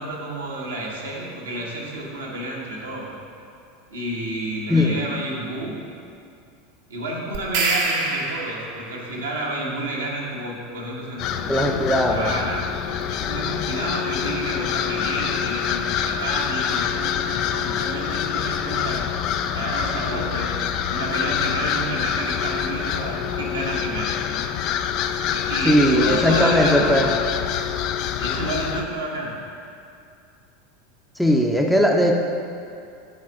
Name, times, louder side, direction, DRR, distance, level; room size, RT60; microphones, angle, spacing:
voice 1, 0.0-3.1 3.9-5.8 6.9-12.8 13.0-24.6 25.3-27.2 28.2-29.4, right 1 dB, 75° right, -4 dB, 1.4 m, -30 dB
voice 2, 4.7-5.0 11.5-12.3 25.7-27.1 31.2-32.1, equal, ahead, 0 dB, 0.6 m, -19 dB
sound 1, 7.3-8.9, right 3 dB, 60° right, 1.0 m, -25 dB
sound 2, 11.2-28.8, left 9 dB, 45° left, 0.3 m, -26 dB
5.9 x 4.3 x 6.3 m, 2.5 s
figure-of-eight pair, 80°, 0 cm